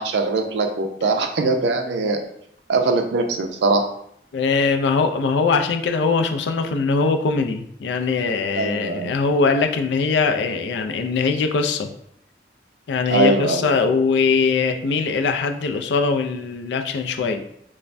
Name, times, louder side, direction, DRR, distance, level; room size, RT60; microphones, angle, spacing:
voice 1, 0.0-2.2 2.7-3.9 8.5-9.1 13.1-13.8, right 3 dB, 70° right, 5 dB, 0.4 m, -21 dB
voice 2, 4.3-11.9 12.9-17.4, left 4 dB, 75° left, 6 dB, 0.3 m, -21 dB
3.2 x 2.1 x 2.5 m, 0.72 s
head